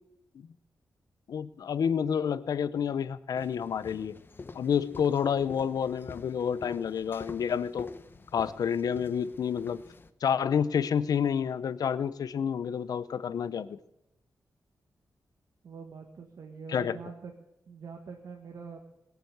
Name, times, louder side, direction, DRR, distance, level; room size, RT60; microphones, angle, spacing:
voice 1, 1.3-4.2 4.5-7.9 8.3-9.8 10.2-13.8 16.7-17.0, left 7 dB, 80° left, 15 dB, 0.7 m, -29 dB
sound 1, 3.4-10.1, left 3 dB, 35° left, 0.9 m, -48 dB
voice 2, 15.6-17.3 17.7-18.8, right 5 dB, 75° right, 3 dB, 1.6 m, -44 dB
21.0 x 7.0 x 7.9 m, 0.88 s
wide cardioid pair, 100°, 6 cm